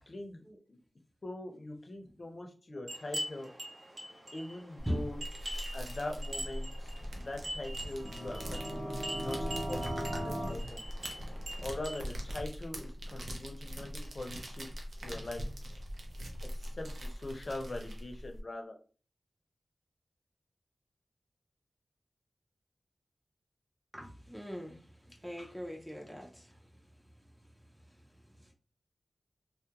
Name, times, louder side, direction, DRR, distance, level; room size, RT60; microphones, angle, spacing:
voice 1, 0.1-0.4 0.7-0.8 1.2-3.5 4.3-5.2 5.7-9.9 10.2-10.8 11.6-14.7 15.0-15.5 16.5-18.8, left 2 dB, 50° left, 3 dB, 0.5 m, -42 dB
sound 1, 2.9-12.0, right 1 dB, 60° right, 1.0 m, -44 dB
sound 2, 4.8-18.4, equal, 90° right, 0.5 m, -42 dB
sound 3, 7.9-10.5, equal, 45° right, 0.7 m, -38 dB
voice 2, 9.8-10.2 23.9-26.9 27.9-28.5, equal, 10° right, -1 dB, 0.4 m, -41 dB
2.3 x 2.1 x 2.8 m, 0.38 s
wide cardioid pair, 65°, 0 cm